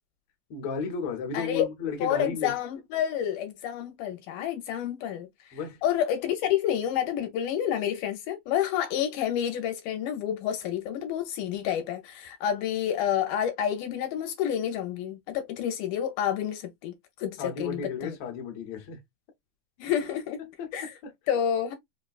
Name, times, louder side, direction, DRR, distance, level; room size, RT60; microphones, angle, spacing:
voice 1, 0.5-2.5 5.5-5.8 17.4-19.0 20.6-20.7 21.0-21.1, left 5 dB, 65° left, 1.5 m, -33 dB
voice 2, 1.3-1.6 2.0-16.9 17.2-18.2 19.8-20.4 20.7-20.9 21.3-21.7, left 10 dB, 80° left, 2.1 m, -29 dB
5.1 x 2.2 x 2.3 m
omnidirectional pair, 3.8 m